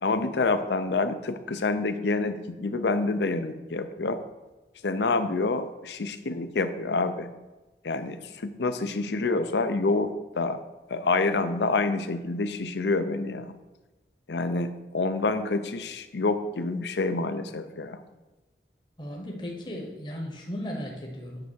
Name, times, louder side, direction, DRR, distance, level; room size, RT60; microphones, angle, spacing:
voice 1, 0.0-4.2 4.8-7.3 7.8-10.6 10.9-13.5 14.3-18.0, left 3 dB, 80° left, 10 dB, 0.6 m, -27 dB
voice 2, 19.0-21.5, equal, 25° left, 0 dB, 0.9 m, -36 dB
8.8 x 3.5 x 6.3 m, 1.1 s
head